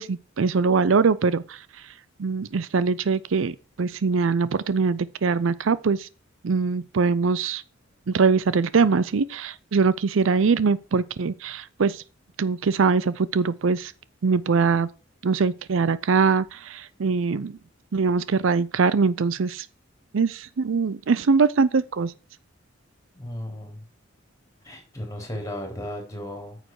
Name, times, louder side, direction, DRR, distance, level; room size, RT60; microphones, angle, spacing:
voice 1, 0.0-1.9 2.2-6.1 6.4-7.6 8.1-12.0 12.4-13.9 14.2-14.9 15.2-17.6 17.9-19.7 20.1-22.1, right 5 dB, 70° right, 0.5 m, -22 dB
voice 2, 23.2-23.8 24.6-26.6, left 1 dB, 15° left, 3.7 m, -35 dB
9.3 x 6.5 x 4.7 m
head